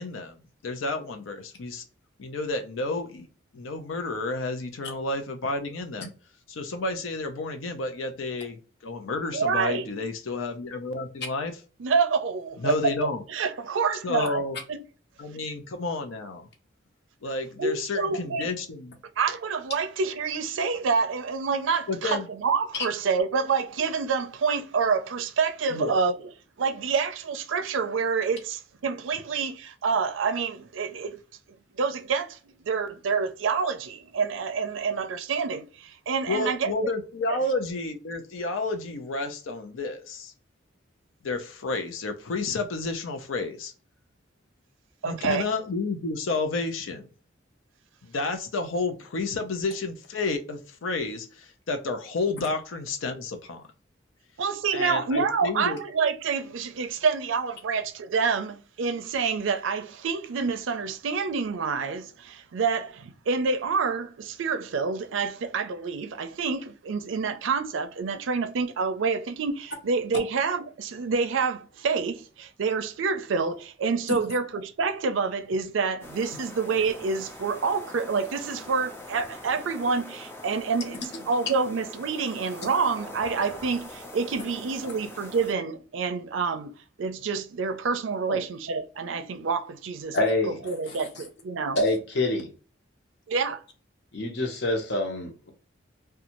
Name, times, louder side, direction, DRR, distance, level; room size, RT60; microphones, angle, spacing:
voice 1, 0.0-1.8 2.2-3.3 3.5-6.1 6.5-11.6 12.6-13.2 14.0-14.6 15.2-16.5 17.2-19.0 21.9-22.3 25.7-26.0 36.3-40.3 41.2-43.7 45.0-47.1 48.0-53.7 54.7-55.8 88.3-88.5, left 3 dB, 90° left, 0.5 m, -31 dB
voice 2, 9.3-9.9 11.8-12.9 13.3-14.4 14.7-14.8 17.6-18.5 19.2-26.1 26.6-31.2 31.8-36.7 37.3-37.4 45.0-45.5 54.4-86.7 87.0-90.2 90.5-91.8 93.3-93.6, right 5 dB, 75° right, 0.4 m, -27 dB
sound 1, 76.0-85.5, left 1 dB, 10° left, 0.3 m, -43 dB
voice 3, 90.1-90.6 90.9-91.1 91.8-92.5 94.1-95.5, left 2 dB, 55° left, 0.8 m, -26 dB
2.6 x 2.3 x 2.9 m
head